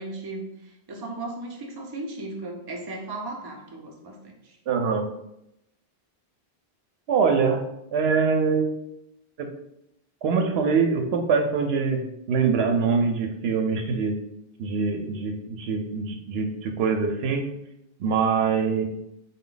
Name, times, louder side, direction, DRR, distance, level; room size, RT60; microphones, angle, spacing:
voice 1, 0.0-4.6, right 2 dB, 30° right, 0 dB, 0.5 m, -36 dB
voice 2, 4.7-5.0 7.1-7.6 7.9-8.7 9.4-9.5 10.2-14.1 14.6-17.5 18.0-18.9, right 5 dB, 80° right, 4 dB, 0.8 m, -24 dB
4.0 x 2.2 x 3.8 m, 0.83 s
omnidirectional pair, 1.0 m